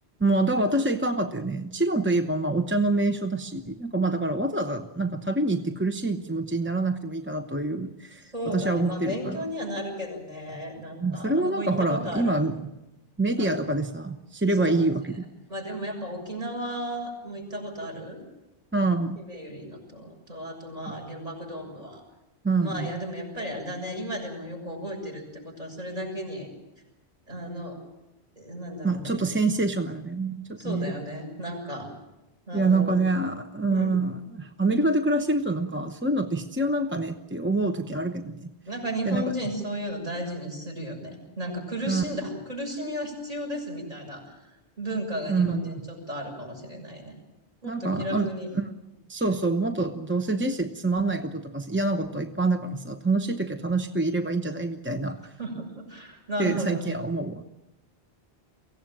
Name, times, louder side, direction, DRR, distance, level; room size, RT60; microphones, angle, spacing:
voice 1, 0.2-9.5 11.0-12.6 13.2-15.3 18.7-19.2 22.4-22.9 28.8-30.9 32.5-38.5 39.0-39.4 41.9-42.0 45.3-45.7 47.6-48.3 48.5-48.7 49.1-55.3 56.4-57.4, right 2 dB, 10° right, 6 dB, 0.8 m, -26 dB
voice 2, 8.3-12.4 13.4-13.6 14.5-14.9 15.5-18.2 19.2-22.0 22.6-26.5 27.3-27.8 28.4-29.2 30.6-31.9 32.5-33.0 33.7-33.9 38.7-47.1 47.6-48.5 55.4-57.0, equal, 35° right, 1 dB, 7.1 m, -34 dB
24.0 x 16.5 x 8.9 m, 0.97 s
omnidirectional pair, 1.1 m